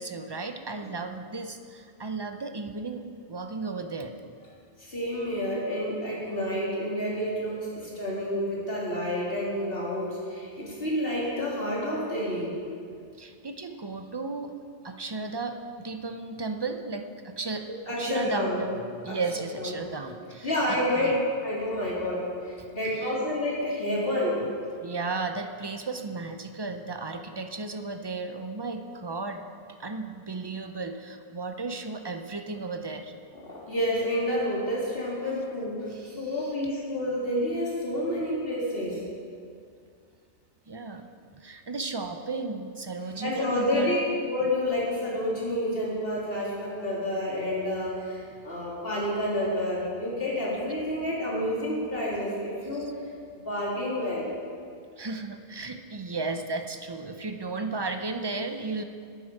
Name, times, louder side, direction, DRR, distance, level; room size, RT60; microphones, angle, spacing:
voice 1, 0.0-4.1 13.2-14.5 14.8-17.7 18.0-21.2 22.9-23.2 23.9-24.1 24.4-24.5 24.8-29.4 29.8-33.1 35.9-36.5 40.7-41.1 41.3-44.0 48.3-48.4 50.6-50.7 52.8-52.9 55.0-58.8, right 3 dB, 30° right, 7 dB, 0.5 m, -35 dB
voice 2, 4.8-12.5 17.9-18.6 19.1-19.2 19.6-19.7 20.4-21.2 21.4-24.4 33.3-35.9 36.1-39.0 43.2-44.0 44.3-52.9 53.4-54.3, left 1 dB, 55° left, -6 dB, 3.1 m, -29 dB
9.4 x 9.2 x 6.6 m, 2.3 s
omnidirectional pair, 1.2 m